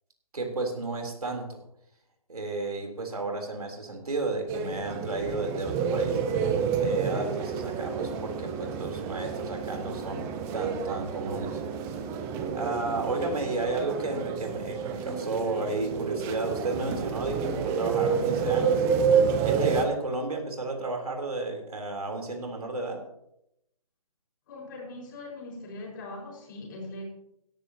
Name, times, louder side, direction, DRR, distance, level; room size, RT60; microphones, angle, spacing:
voice 1, 0.3-1.5 2.3-6.2 6.8-11.6 12.5-18.9 19.4-23.0, right 2 dB, 75° right, 3 dB, 3.6 m, -32 dB
sound 1, 4.5-19.9, right 6 dB, 15° right, 0.7 m, -29 dB
voice 2, 24.5-27.1, left 2 dB, 35° left, -1 dB, 5.3 m, -41 dB
17.0 x 12.5 x 2.9 m, 0.80 s
figure-of-eight pair, 150°, 19 cm